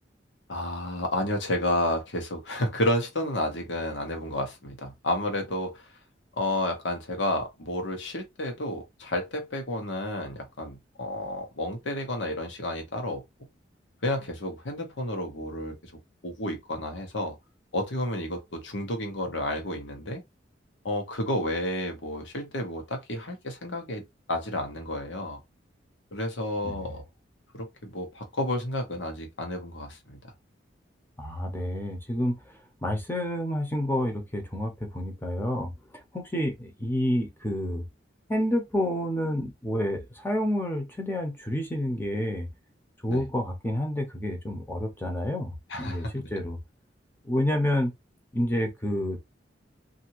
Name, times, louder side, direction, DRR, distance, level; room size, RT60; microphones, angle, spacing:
voice 1, 0.5-5.9 6.4-13.2 14.0-15.9 16.2-17.4 17.7-20.2 20.8-24.0 24.3-25.4 26.1-27.0 27.5-30.2 43.1-43.2 45.7-46.3, left 1 dB, 85° left, 1.0 m, -31 dB
voice 2, 31.2-32.4 32.8-37.8 38.3-42.5 43.0-45.5 45.8-46.6 47.2-47.9 48.3-49.2, equal, 10° left, 0.7 m, -29 dB
2.8 x 2.6 x 2.9 m
head